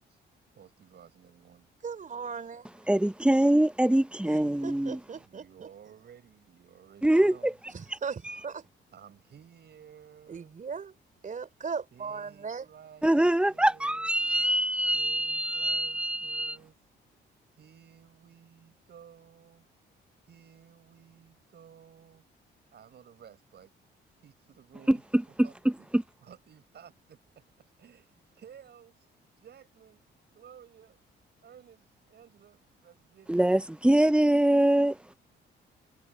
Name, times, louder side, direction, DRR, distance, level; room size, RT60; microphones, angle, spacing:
voice 1, 0.5-1.7 2.4-2.6 5.2-7.6 8.9-10.5 11.9-14.2 14.9-16.8 17.5-19.7 20.3-22.2 22.6-23.7 24.2-25.1 25.4-25.5 26.2-30.0 30.3-31.0 31.4-33.4, right 8 dB, 55° right, 8.0 m, -54 dB
voice 2, 1.8-2.7 4.3-5.7 7.7-8.7 10.3-10.9 11.2-12.7, right 5 dB, 40° right, 4.5 m, -38 dB
voice 3, 2.9-5.0 7.0-7.5 8.2-8.3 13.0-16.6 24.9-25.2 25.9-26.0 33.3-35.0, right 1 dB, 5° right, 0.8 m, -24 dB
cardioid pair, 90°, 20 cm